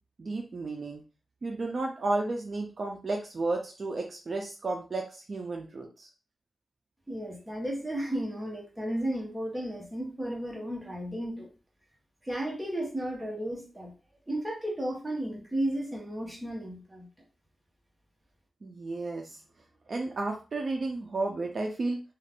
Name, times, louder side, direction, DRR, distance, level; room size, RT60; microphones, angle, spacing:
voice 1, 0.2-1.0 1.4-6.1 18.6-19.4 19.9-22.0, right 2 dB, 45° right, 1 dB, 0.4 m, -32 dB
voice 2, 7.1-11.5 12.3-13.9 14.3-17.1, right 1 dB, 10° right, -2 dB, 0.9 m, -34 dB
2.4 x 2.4 x 3.4 m, 0.33 s
wide cardioid pair, 155°, 0 cm